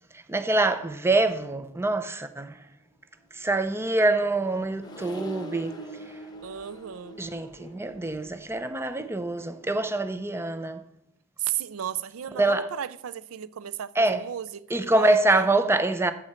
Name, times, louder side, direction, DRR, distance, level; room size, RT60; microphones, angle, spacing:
voice 1, 0.1-2.6 3.3-5.8 6.1-6.2 7.2-10.8 12.4-12.7 14.0-14.2 14.7-16.1, right 2 dB, 10° right, 0.5 m, -25 dB
Accelerating revving vroom, 3.4-10.1, right 1 dB, 20° left, 1.1 m, -45 dB
voice 2, 6.4-7.2 11.4-15.5, right 10 dB, 80° right, 0.4 m, -34 dB
14.0 x 7.5 x 4.3 m
head